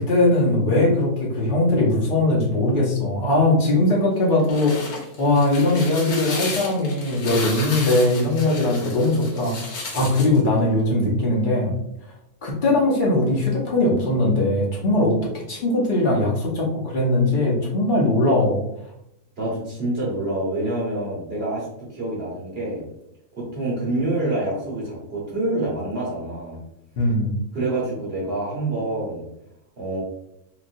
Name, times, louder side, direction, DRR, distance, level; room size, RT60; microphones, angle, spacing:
voice 1, 0.0-11.7 12.4-15.1 15.5-18.6 27.0-27.3, left 2 dB, 50° left, -3 dB, 0.6 m, -20 dB
sound 1, 4.2-10.4, left 3 dB, 75° left, 1.3 m, -33 dB
voice 2, 19.4-22.8 23.4-26.6 27.5-29.2 29.8-30.0, right 2 dB, 45° right, -6 dB, 1.2 m, -27 dB
3.0 x 2.6 x 2.5 m, 0.80 s
omnidirectional pair, 1.6 m